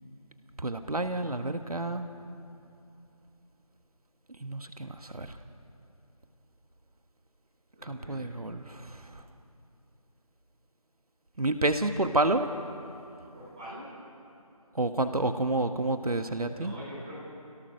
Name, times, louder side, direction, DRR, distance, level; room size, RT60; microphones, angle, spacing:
voice 1, 0.6-2.1 4.4-5.4 7.8-9.2 11.4-12.5 14.7-16.7, right 2 dB, 75° right, 8 dB, 1.6 m, -29 dB
voice 2, 7.7-8.4 13.3-13.9 16.5-17.2, equal, 10° right, -10 dB, 4.8 m, -44 dB
28.5 x 17.5 x 6.6 m, 2.8 s
figure-of-eight pair, 180°, 19 cm